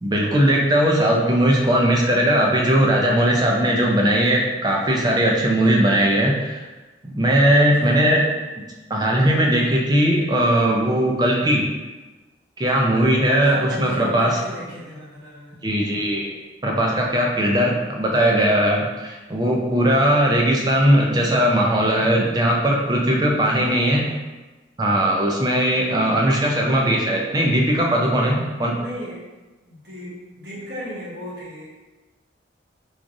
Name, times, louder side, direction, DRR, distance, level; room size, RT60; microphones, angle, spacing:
voice 1, 0.0-6.6 7.0-8.2 8.9-11.7 12.6-14.4 15.6-16.4 16.6-24.1 24.8-28.8, right 1 dB, 20° right, -1 dB, 0.4 m, -19 dB
voice 2, 7.7-8.2 13.4-15.5 23.4-24.1 28.7-29.2 29.6-31.7, equal, 55° right, -6 dB, 1.1 m, -36 dB
4.6 x 2.5 x 2.6 m, 1.2 s
head